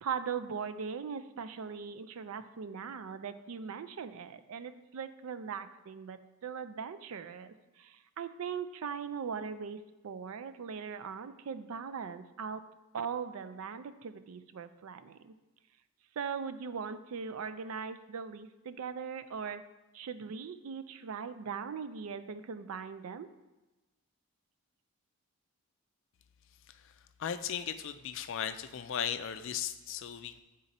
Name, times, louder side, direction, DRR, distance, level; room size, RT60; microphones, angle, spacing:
voice 1, 0.0-12.6 12.9-15.3 16.2-19.6 19.9-23.3, right 6 dB, 75° right, 11 dB, 0.4 m, -40 dB
voice 2, 27.2-30.4, left 8 dB, 55° left, 10 dB, 0.4 m, -36 dB
8.0 x 3.8 x 4.1 m, 1.1 s
head